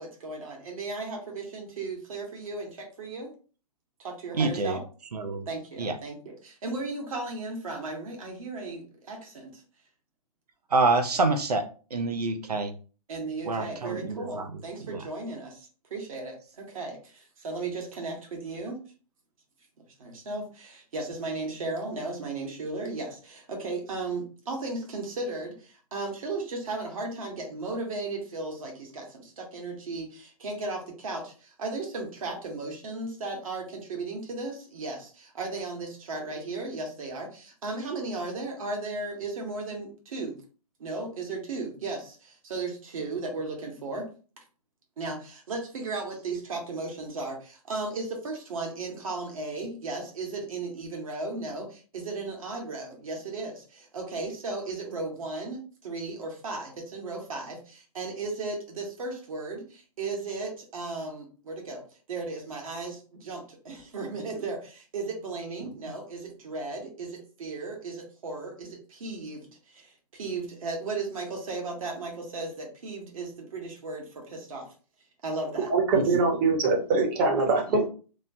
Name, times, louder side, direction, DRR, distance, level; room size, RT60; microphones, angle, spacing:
voice 1, 0.0-3.3 4.0-4.8 5.5-9.6 13.1-18.8 20.0-40.4 40.8-44.1 45.0-61.8 62.1-74.7 75.2-75.7, right 3 dB, 60° right, 1 dB, 1.2 m, -35 dB
voice 2, 4.3-4.8 5.1-5.4 5.8-6.0 10.7-11.7 11.9-12.7 13.5-14.5 14.8-15.1 65.6-65.7, right 3 dB, 85° right, 8 dB, 0.6 m, -26 dB
voice 3, 75.7-77.9, right 3 dB, 35° right, 2 dB, 0.9 m, -23 dB
3.0 x 2.1 x 2.7 m, 0.37 s
hypercardioid pair, 130°, 20 cm